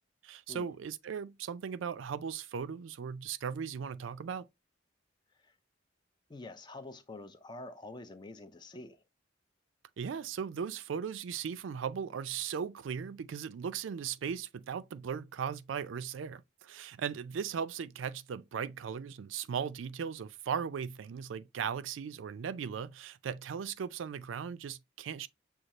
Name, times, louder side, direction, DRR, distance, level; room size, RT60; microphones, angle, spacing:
voice 1, 0.2-4.5 10.0-25.3, right 7 dB, 80° right, 0.4 m, -38 dB
voice 2, 6.3-9.0, left 2 dB, 25° left, 0.4 m, -47 dB
6.4 x 2.3 x 2.9 m
head